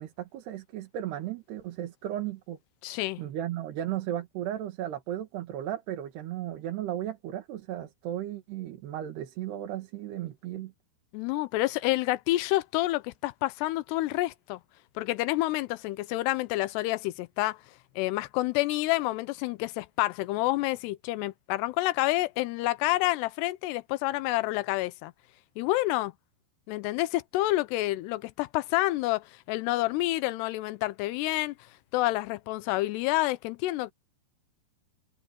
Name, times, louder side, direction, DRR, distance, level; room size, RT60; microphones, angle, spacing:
voice 1, 0.0-2.6 3.2-10.7, right 12 dB, 80° right, 3.9 m, -35 dB
voice 2, 2.8-3.2 11.1-14.6 15.0-17.6 18.0-25.1 25.6-26.1 26.7-31.5 31.9-33.9, left 18 dB, 90° left, 2.9 m, -28 dB
omnidirectional pair, 4.7 m